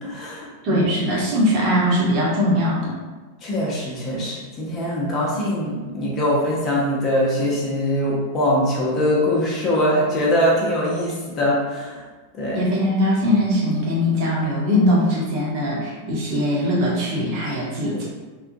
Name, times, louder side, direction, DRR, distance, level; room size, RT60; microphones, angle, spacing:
voice 1, 0.0-0.9 3.4-12.0 12.3-12.6 17.8-18.0, left 1 dB, 30° left, -5 dB, 0.8 m, -22 dB
voice 2, 0.6-3.0 12.5-18.0, left 1 dB, 40° right, -5 dB, 0.9 m, -21 dB
3.6 x 2.3 x 2.6 m, 1.3 s
figure-of-eight pair, 90°, 0 cm